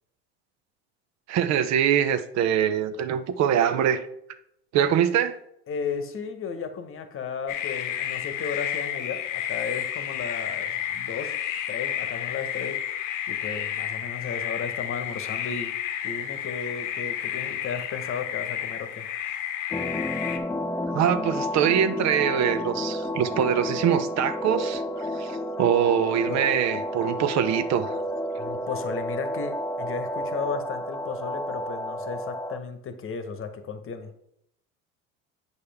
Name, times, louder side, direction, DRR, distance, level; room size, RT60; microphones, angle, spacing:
voice 1, 1.3-4.1 4.7-5.4 20.9-28.0, right 9 dB, 55° right, 0.7 m, -23 dB
voice 2, 5.7-11.3 11.7-12.8 13.3-15.7 16.0-19.0 26.3-26.4 28.4-34.1, left 6 dB, 40° left, 1.1 m, -34 dB
sound 1, 7.5-20.4, left 10 dB, 65° left, 0.9 m, -31 dB
sound 2, 19.7-32.6, left 1 dB, 10° left, 0.3 m, -31 dB
8.2 x 5.2 x 3.4 m
supercardioid pair, 85°, 33 cm